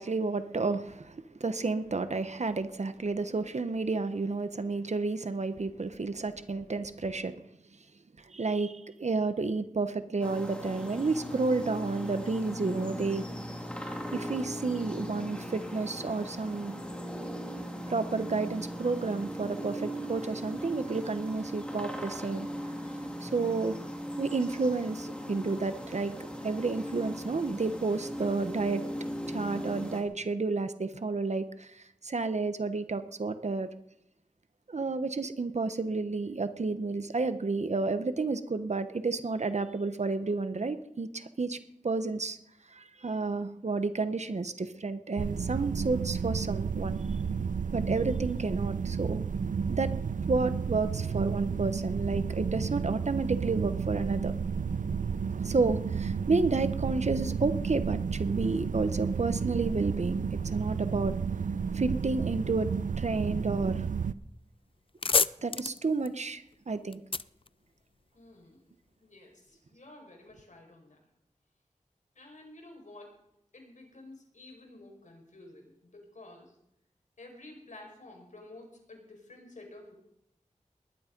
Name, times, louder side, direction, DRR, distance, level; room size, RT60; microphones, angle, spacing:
voice 1, 0.0-7.4 8.3-13.3 14.1-16.8 17.9-22.5 23.2-23.8 24.2-26.1 26.4-28.9 29.3-33.7 34.7-41.6 41.8-42.4 42.7-47.0 47.7-49.2 49.7-49.9 50.3-54.3 55.4-61.2 61.7-62.7 63.0-63.9 65.4-67.0, right 3 dB, 60° right, 11 dB, 1.0 m, -31 dB
sound 1, 10.2-30.0, equal, 10° left, 2.9 m, -39 dB
sound 2, 45.2-64.1, right 6 dB, 90° right, 0.5 m, -32 dB
sound 3, 64.3-64.4 64.7-68.3, left 4 dB, 45° left, 0.5 m, -31 dB
voice 2, 68.1-68.7 69.0-71.0 72.1-73.1 73.5-76.5 77.2-79.9, left 2 dB, 75° left, 2 dB, 4.9 m, -51 dB
19.5 x 11.5 x 5.3 m, 0.79 s
wide cardioid pair, 70°, 13 cm